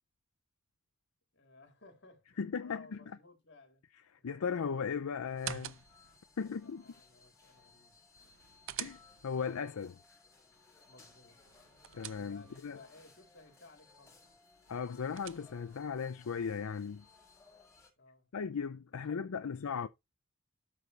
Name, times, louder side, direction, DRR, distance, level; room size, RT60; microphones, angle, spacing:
voice 1, 1.3-3.8 4.2-4.3 6.4-8.3 10.9-11.6 12.1-14.3 18.0-18.3 18.9-19.9, left 3 dB, 55° left, 3.3 m, -59 dB
voice 2, 2.4-3.0 4.1-5.8 6.4-6.8 8.8-10.0 11.9-12.8 14.7-17.1 18.3-19.9, left 6 dB, 85° left, 0.5 m, -37 dB
sound 1, 5.3-6.2 8.2-9.4 11.4-12.7 14.7-15.8, right 12 dB, 60° right, 0.4 m, -46 dB
sound 2, 5.4-17.9, left 4 dB, 15° left, 4.9 m, -62 dB
12.5 x 5.3 x 3.3 m
head